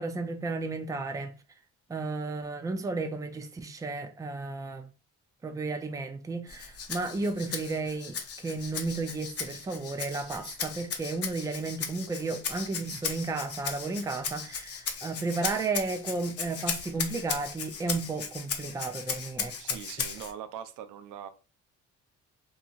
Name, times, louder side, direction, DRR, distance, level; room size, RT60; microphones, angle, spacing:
voice 1, 0.0-1.3 1.9-4.9 5.4-19.8, right 3 dB, 10° right, 0.4 m, -33 dB
Rattle (instrument), 6.5-20.3, left 6 dB, 50° left, 0.6 m, -36 dB
voice 2, 19.6-21.3, right 9 dB, 85° right, 0.5 m, -42 dB
2.8 x 2.5 x 2.4 m
cardioid pair, 90°, 30 cm